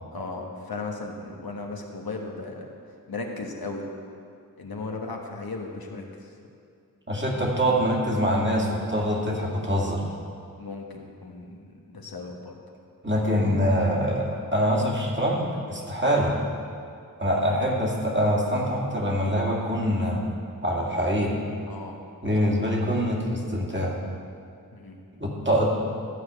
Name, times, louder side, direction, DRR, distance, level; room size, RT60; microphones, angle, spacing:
voice 1, 0.1-2.7 3.1-3.9 4.6-6.3 10.6-12.6 21.7-22.1 22.4-22.8 24.7-25.0, left 3 dB, 70° left, 1 dB, 1.3 m, -36 dB
voice 2, 7.1-10.0 13.0-16.4 17.2-20.2 20.6-21.4 22.2-23.9 25.2-25.7, equal, 30° right, -3 dB, 2.2 m, -24 dB
13.0 x 4.8 x 8.0 m, 2.4 s
cardioid pair, 45°, 38 cm